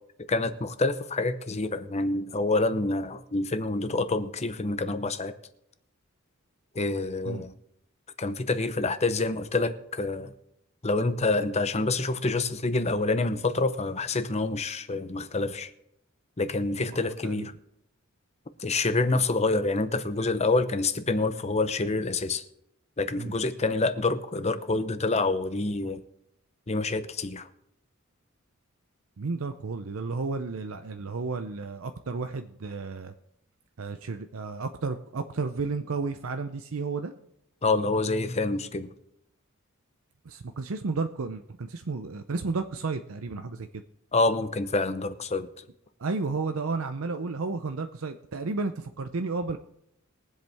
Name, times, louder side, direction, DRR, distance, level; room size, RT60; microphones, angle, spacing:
voice 1, 0.3-5.3 6.7-7.5 8.2-10.3 10.8-15.7 16.4-17.5 18.6-22.4 23.0-26.0 26.7-27.5 37.6-38.9 44.1-45.5, left 3 dB, 30° left, 0.8 m, -27 dB
voice 2, 16.7-17.5 19.1-19.2 23.2-23.3 29.2-33.1 33.8-37.1 40.2-43.8 46.0-49.6, right 4 dB, 65° right, 0.6 m, -32 dB
22.0 x 8.0 x 3.5 m
head